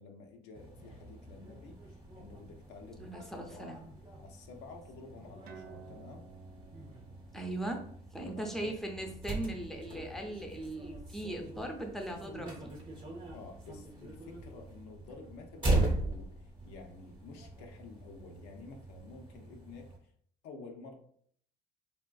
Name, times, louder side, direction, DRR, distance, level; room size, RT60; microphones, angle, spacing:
voice 1, 0.0-3.8 4.2-6.2 8.2-8.8 13.3-19.9 20.4-21.0, left 4 dB, 90° left, 3 dB, 0.5 m, -51 dB
sound 1, 0.5-20.0, right 2 dB, 30° right, 0.8 m, -40 dB
voice 2, 3.0-3.8 7.3-7.8 8.1-12.7, right 1 dB, ahead, 2 dB, 0.5 m, -39 dB
sound 2, 5.4-12.4, right 4 dB, 65° right, 0.4 m, -57 dB
3.4 x 2.4 x 2.3 m, 0.62 s
cardioid pair, 110°, 17 cm